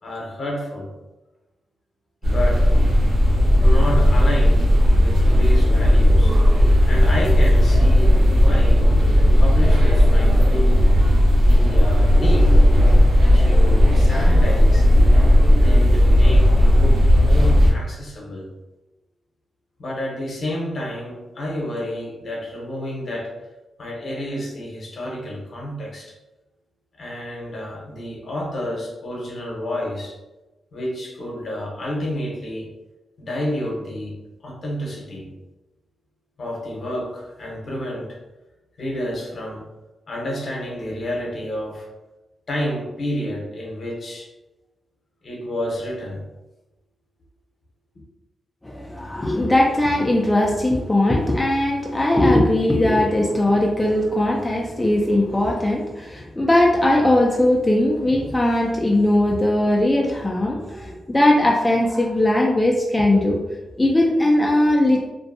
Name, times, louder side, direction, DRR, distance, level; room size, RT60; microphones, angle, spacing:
voice 1, 0.0-0.9 2.2-2.7 3.6-4.7 5.0-6.4 6.9-8.9 9.4-10.8 11.3-12.6 13.3-14.9 15.6-18.5 19.8-23.3 23.8-26.1 27.0-30.2 30.7-32.7 33.2-34.1 34.4-35.3 36.4-38.2 38.8-39.7 40.1-41.9 42.5-44.3 45.2-46.2, left 1 dB, 55° left, -2 dB, 0.8 m, -30 dB
sound 1, 2.2-17.7, equal, 70° right, 0.9 m, -14 dB
voice 2, 48.6-63.4 63.8-65.1, left 1 dB, 15° left, -2 dB, 0.4 m, -19 dB
2.6 x 2.2 x 2.5 m, 1.0 s
cardioid pair, 75°, 0 cm